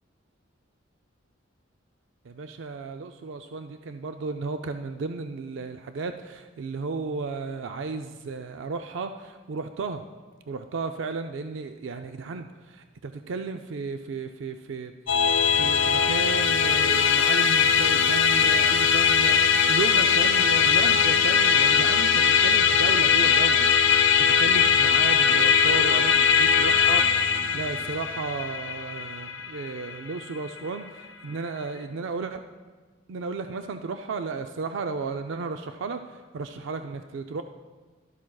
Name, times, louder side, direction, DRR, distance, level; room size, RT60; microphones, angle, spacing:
voice 1, 2.2-10.0 10.5-14.9 15.5-32.4 33.1-37.4, right 4 dB, 70° right, 7 dB, 0.4 m, -34 dB
Musical instrument, 15.1-30.6, left 7 dB, 70° left, 0.7 m, -21 dB
12.0 x 12.0 x 2.3 m, 1.3 s
head